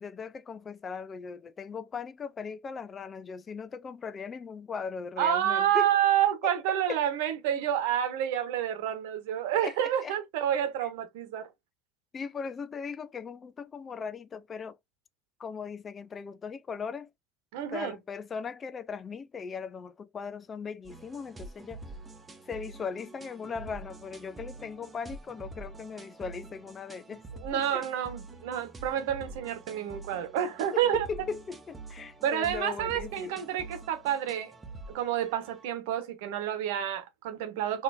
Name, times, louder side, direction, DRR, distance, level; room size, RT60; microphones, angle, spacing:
voice 1, 0.0-5.9 6.4-6.5 6.9-7.0 9.6-10.1 10.8-10.9 12.1-14.8 15.4-17.1 17.7-21.8 22.5-27.2 27.5-27.8 30.7-33.4, left 5 dB, 30° left, 0.4 m, -38 dB
voice 2, 5.2-11.5 17.5-17.9 27.4-31.1 32.2-34.5 34.9-37.8, right 10 dB, 65° right, 1.0 m, -29 dB
sound 1, 20.8-35.7, right 3 dB, 20° right, 0.9 m, -46 dB
4.0 x 2.8 x 2.5 m
figure-of-eight pair, 70°, 0 cm